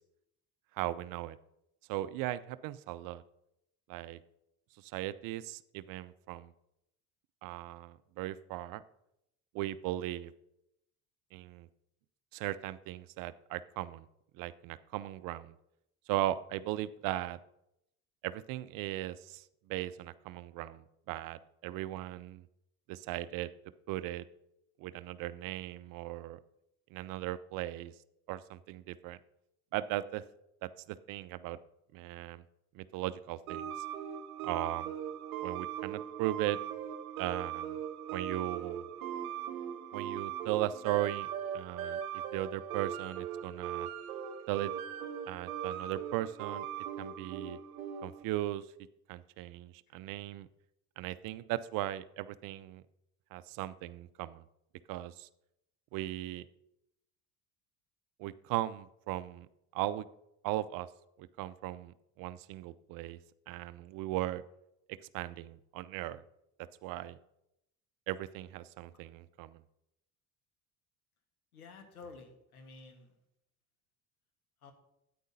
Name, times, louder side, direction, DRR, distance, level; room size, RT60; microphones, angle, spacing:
voice 1, 0.8-1.4 1.9-3.2 3.9-4.2 4.8-6.5 7.4-8.8 9.5-10.3 11.3-11.7 12.3-14.0 14.4-15.5 16.1-17.4 18.2-19.4 19.7-22.4 22.9-23.5 23.9-24.3 24.8-26.4 26.9-27.9 28.3-29.2 29.7-30.2 30.6-31.6 31.9-32.4 32.7-33.7 34.4-34.9 35.4-36.6 37.2-37.8 38.1-38.9 39.9-41.3 41.5-42.0 42.3-43.9 44.5-44.7 45.3-46.7 47.0-47.6 48.0-48.6 49.1-50.5 51.0-52.8 53.3-54.4 54.9-55.3 55.9-56.5 58.2-59.5 59.7-60.0 60.4-60.9 61.2-63.2 63.5-64.4 65.1-66.2 66.8-67.2 68.1-69.6, right 15 dB, 50° right, 16 dB, 0.6 m, -37 dB
sound 1, 33.5-48.2, right 9 dB, 75° right, 0.9 m, -39 dB
voice 2, 71.5-73.0 74.6-74.7, left 4 dB, 85° left, 6 dB, 1.5 m, -51 dB
13.0 x 9.4 x 2.7 m, 0.83 s
figure-of-eight pair, 60°, 43 cm